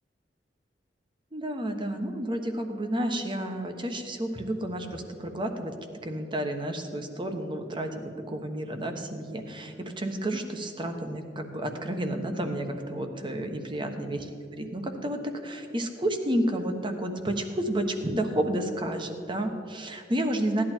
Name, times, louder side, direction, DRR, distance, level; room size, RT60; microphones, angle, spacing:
voice 1, 1.3-5.7 6.0-14.2 14.5-20.6, right 1 dB, 30° right, 5 dB, 1.2 m, -31 dB
16.5 x 11.0 x 4.5 m, 2.6 s
head